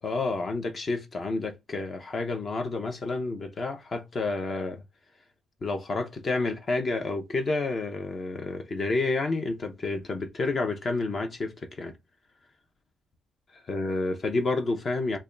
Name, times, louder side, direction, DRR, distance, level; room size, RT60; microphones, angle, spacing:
voice 1, 0.0-4.8 5.6-12.0 13.7-15.2, left 3 dB, 35° left, 0.6 m, -29 dB
3.3 x 2.2 x 3.6 m
cardioid pair, 125°, 0 cm